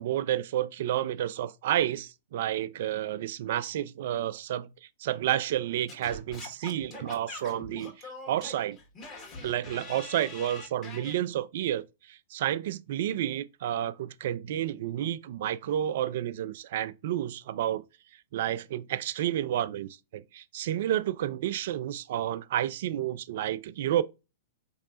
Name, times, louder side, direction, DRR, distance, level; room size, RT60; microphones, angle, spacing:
voice 1, 0.0-4.7 5.0-8.8 9.4-11.8 12.1-17.8 18.3-24.0, right 11 dB, 55° right, 0.3 m, -30 dB
Singing / Scratching (performance technique), 5.9-11.2, left 3 dB, 30° left, 1.5 m, -44 dB
4.2 x 3.0 x 2.6 m
figure-of-eight pair, 105°, 0 cm